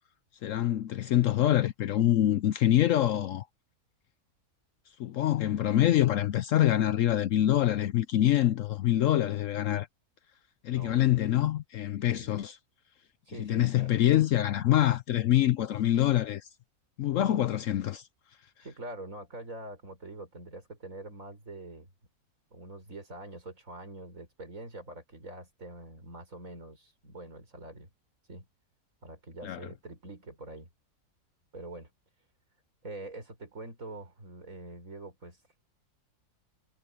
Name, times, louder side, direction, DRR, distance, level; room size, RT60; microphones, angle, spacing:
voice 1, 0.4-3.5 5.0-9.9 10.6-12.6 13.4-16.5 17.0-18.0 29.4-29.7, left 13 dB, 65° left, 0.9 m, -25 dB
voice 2, 10.7-11.5 12.1-12.3 13.3-14.0 18.6-21.9 22.5-27.9 28.3-28.5 29.0-30.7 31.5-31.9 32.8-35.6, right 2 dB, 60° right, 5.7 m, -45 dB
omnidirectional pair, 1.6 m